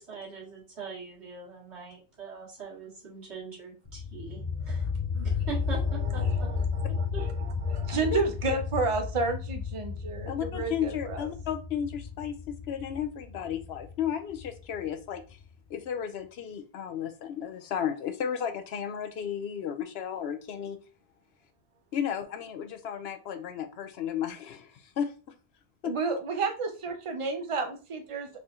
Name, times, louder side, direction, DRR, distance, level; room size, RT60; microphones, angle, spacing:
voice 1, 0.0-4.9 5.1-6.5 7.1-7.3, right 5 dB, 75° right, -4 dB, 1.9 m, -42 dB
sound 1, 3.9-15.4, left 5 dB, 85° left, 1.8 m, -33 dB
voice 2, 5.9-11.3 25.8-28.3, right 4 dB, 35° right, 5 dB, 0.7 m, -31 dB
voice 3, 10.3-15.4 15.7-20.8 21.9-25.1 25.8-25.9, left 8 dB, 70° left, 8 dB, 0.8 m, -33 dB
4.2 x 3.6 x 2.5 m, 0.34 s
omnidirectional pair, 1.1 m